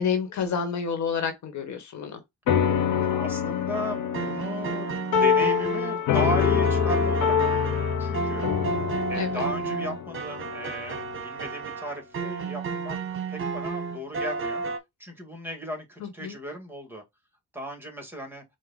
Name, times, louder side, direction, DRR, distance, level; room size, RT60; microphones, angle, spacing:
voice 1, 0.0-2.2 9.1-9.4 16.0-16.3, left 6 dB, 70° left, 1.4 m, -29 dB
sound 1, 2.5-11.2, left 7 dB, 85° left, 1.0 m, -26 dB
voice 2, 2.9-8.5 9.1-13.0 13.3-14.6 15.0-17.0 17.5-18.4, left 1 dB, 5° right, 1.8 m, -36 dB
sound 2, 3.7-14.8, right 4 dB, 45° right, 1.0 m, -32 dB
4.7 x 2.5 x 4.0 m
cardioid pair, 90°, 30 cm